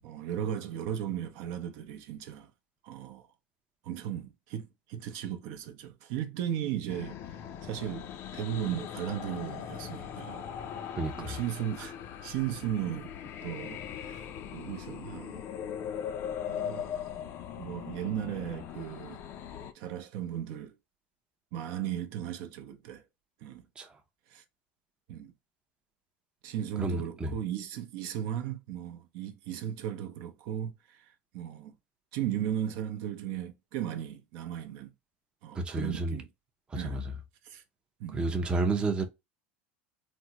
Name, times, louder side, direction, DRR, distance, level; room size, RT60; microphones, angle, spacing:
voice 1, 0.0-2.5 2.8-3.3 3.8-7.2 7.6-10.5 11.2-11.9 12.2-13.1 13.4-14.3 14.5-15.4 16.5-17.2 17.6-19.2 19.7-20.7 21.5-23.0 23.4-23.7 24.3-24.4 25.1-25.3 26.4-31.7 32.1-34.9 35.4-36.3 36.7-37.1 37.4-37.6 38.0-38.2, right 10 dB, 65° right, 0.6 m, -36 dB
sound 1, 6.9-19.7, left 9 dB, 45° left, 0.4 m, -40 dB
voice 2, 11.0-11.4 23.8-23.9 26.8-27.3 35.5-36.2 36.7-37.1 38.1-39.0, right 3 dB, 15° right, 0.5 m, -31 dB
3.4 x 2.0 x 2.8 m
supercardioid pair, 120°, 5 cm